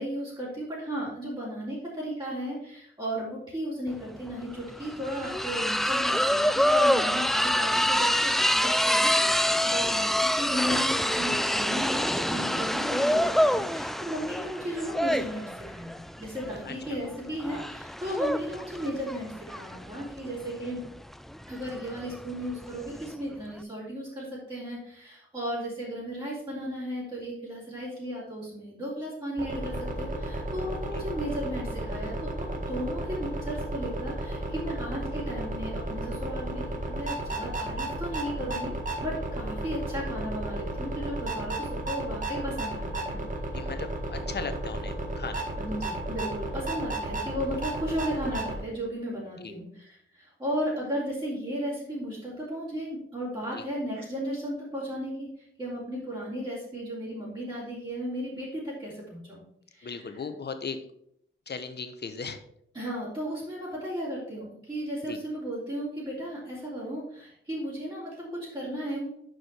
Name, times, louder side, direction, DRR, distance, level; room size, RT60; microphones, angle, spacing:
voice 1, 0.0-20.8 21.5-38.8 39.0-43.2 45.6-59.4 59.7-60.2 62.7-69.1, equal, 20° right, -9 dB, 3.3 m, -35 dB
sound 1, 3.9-4.0 4.3-23.1, equal, ahead, 0.3 m, -26 dB
voice 2, 16.7-17.0 30.9-31.0 43.5-45.5 49.4-49.5 53.5-53.6 59.8-60.8 61.5-62.4 65.1-65.2, left 5 dB, 50° left, 9 dB, 1.0 m, -37 dB
sound 2, 29.4-48.6, right 1 dB, 40° right, 1.9 m, -33 dB
6.3 x 5.0 x 5.6 m, 0.71 s
cardioid pair, 75°, 21 cm